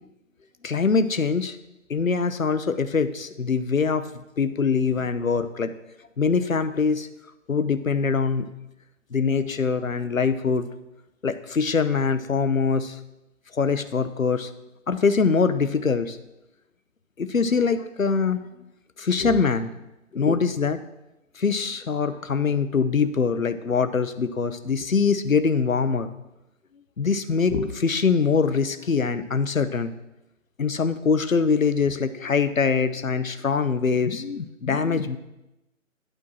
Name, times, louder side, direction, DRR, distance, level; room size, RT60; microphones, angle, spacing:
voice 1, 0.6-1.6 1.9-5.7 6.2-7.1 7.5-8.5 9.1-10.7 11.2-13.0 13.5-14.5 14.9-16.2 17.2-18.5 19.0-19.7 20.1-20.8 21.3-26.1 27.0-29.9 30.6-35.2, left 5 dB, 80° left, 11 dB, 0.8 m, -23 dB
9.0 x 4.6 x 6.0 m, 0.95 s
figure-of-eight pair, 145°, 40 cm